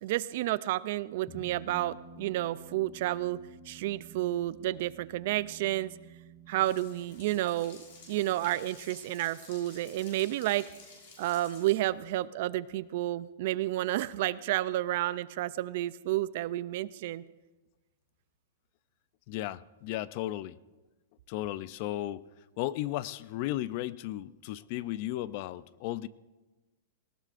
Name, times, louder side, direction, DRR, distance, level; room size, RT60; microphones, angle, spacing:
voice 1, 0.0-3.4 3.7-5.9 6.5-10.7 11.2-17.2, right 15 dB, 45° right, 18 dB, 0.3 m, -31 dB
sound 1, 1.3-12.0, right 4 dB, 10° left, 1.5 m, -53 dB
sound 2, 6.6-11.7, left 4 dB, 50° left, 6.1 m, -53 dB
voice 2, 19.3-20.6 21.3-22.2 22.6-26.1, left 15 dB, 35° left, 18 dB, 0.3 m, -35 dB
19.0 x 18.0 x 2.5 m, 1.1 s
supercardioid pair, 165°, 0 cm